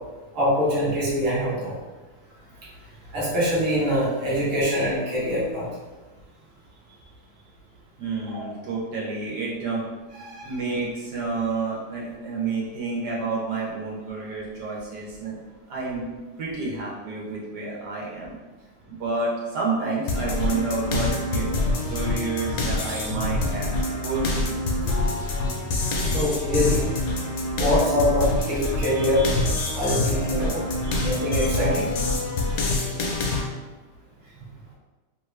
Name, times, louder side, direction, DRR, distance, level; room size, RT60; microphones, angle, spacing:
voice 1, 0.3-1.8 3.1-5.7 8.3-8.4 10.2-10.5 26.1-26.8 27.6-31.9, equal, 40° right, -6 dB, 1.1 m, -24 dB
voice 2, 8.0-9.8 10.4-15.4 15.7-16.0 16.4-18.4 18.9-23.7 24.0-24.6, right 3 dB, 80° right, -4 dB, 1.3 m, -29 dB
sound 1, 20.1-33.4, left 2 dB, 70° left, 1.0 m, -26 dB
sound 2, 22.8-23.1 26.0-26.4 29.6-30.0 31.3-31.6 32.6-32.9, left 2 dB, 50° left, 0.7 m, -36 dB
3.0 x 2.4 x 3.2 m, 1.2 s
omnidirectional pair, 1.8 m